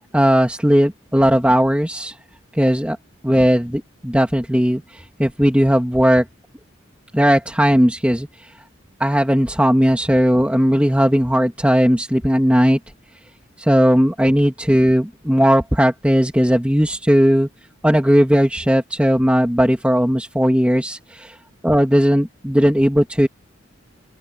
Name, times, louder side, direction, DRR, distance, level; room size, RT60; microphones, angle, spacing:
voice 1, 0.1-2.2 2.5-3.0 3.2-6.3 7.1-8.5 9.0-12.8 13.6-17.5 17.8-21.3 21.6-23.3, equal, 5° right, 2.8 m, -17 dB
open air
head